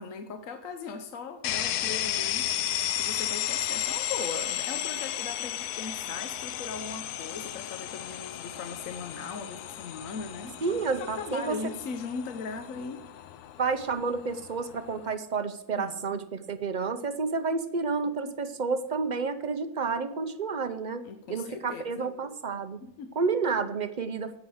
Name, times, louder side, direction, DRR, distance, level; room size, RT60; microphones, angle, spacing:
voice 1, 0.0-2.5 2.9-10.6 11.1-13.1 15.8-16.2 18.2-18.3 21.0-22.1 22.8-23.1, left 5 dB, 65° left, 7 dB, 1.2 m, -39 dB
sound 1, 1.4-15.1, left 12 dB, 85° left, 1.2 m, -34 dB
voice 2, 10.6-11.6 13.6-22.8 23.2-24.3, right 4 dB, 45° right, 11 dB, 0.6 m, -30 dB
17.0 x 5.7 x 6.3 m, 0.92 s
omnidirectional pair, 1.6 m